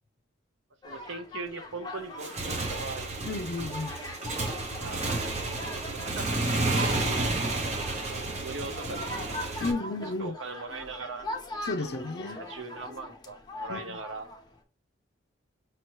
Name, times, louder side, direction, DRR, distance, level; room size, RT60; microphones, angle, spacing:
sound 1, 0.8-14.6, left 1 dB, 20° left, 0.8 m, -41 dB
voice 1, 0.8-3.1 4.8-7.4 8.0-9.6 10.0-11.3 11.8-14.3, right 3 dB, 85° right, 0.8 m, -41 dB
Motorcycle / Engine, 2.1-9.7, right 2 dB, 35° right, 0.8 m, -31 dB
voice 2, 3.2-3.9 7.0-7.1 9.6-10.3 11.6-12.4 13.7-14.0, left 3 dB, 55° left, 0.5 m, -33 dB
5.9 x 3.0 x 3.0 m
head